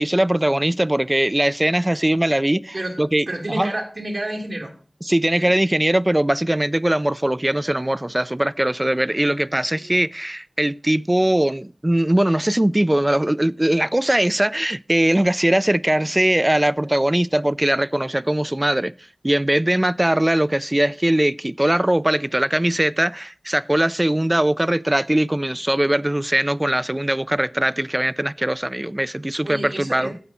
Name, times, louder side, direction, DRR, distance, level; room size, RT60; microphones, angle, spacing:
voice 1, 0.0-3.7 5.0-18.9 19.2-30.1, right 1 dB, 25° right, 0.4 m, -20 dB
voice 2, 3.3-4.7 5.4-5.5 9.8-10.0 29.4-30.1, right 1 dB, 75° right, 2.7 m, -30 dB
14.5 x 5.9 x 4.3 m
wide cardioid pair, 45°, 0 cm